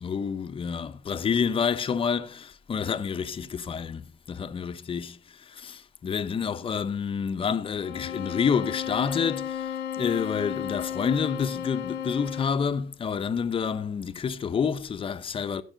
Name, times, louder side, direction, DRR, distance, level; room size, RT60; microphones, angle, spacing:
voice 1, 0.0-5.2 5.5-9.7 10.0-15.6, left 6 dB, 30° left, 0.8 m, -28 dB
sound 1, 7.8-12.7, left 9 dB, 75° left, 0.8 m, -34 dB
16.0 x 5.4 x 3.9 m
cardioid pair, 110°, 17 cm